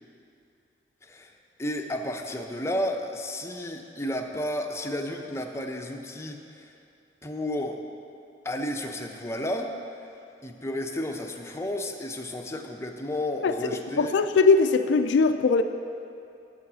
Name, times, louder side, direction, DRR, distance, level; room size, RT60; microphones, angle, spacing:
voice 1, 1.0-1.3 1.6-6.7 7.2-7.8 8.4-9.7 10.4-14.2, left 1 dB, 15° left, 3 dB, 0.6 m, -32 dB
voice 2, 14.0-15.6, left 4 dB, 75° left, 9 dB, 0.4 m, -20 dB
8.6 x 7.0 x 6.1 m, 2.6 s
head